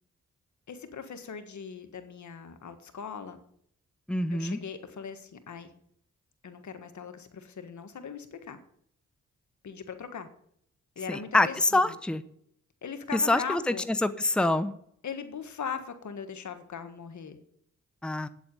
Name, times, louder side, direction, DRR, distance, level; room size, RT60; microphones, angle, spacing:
voice 1, 0.7-3.4 4.3-5.7 6.4-8.6 9.6-10.3 10.9-12.0 12.8-13.8 15.0-17.4, left 6 dB, 70° left, 8 dB, 1.6 m, -39 dB
voice 2, 4.1-4.6 11.1-12.2 13.1-13.7 14.0-14.7 18.0-18.3, left 2 dB, 5° left, 11 dB, 0.8 m, -25 dB
8.6 x 8.1 x 7.8 m, 0.68 s
cardioid pair, 55°, 31 cm